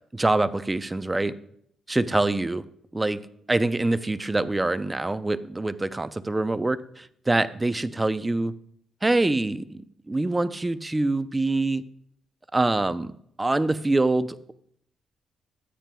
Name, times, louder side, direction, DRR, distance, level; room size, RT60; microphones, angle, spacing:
voice 1, 0.1-1.3 1.9-2.6 2.9-3.2 3.5-8.5 9.0-11.8 12.5-13.1 13.4-14.5, right 2 dB, 20° right, 13 dB, 0.5 m, -25 dB
13.5 x 9.1 x 2.3 m, 0.68 s
cardioid pair, 80°, 0 cm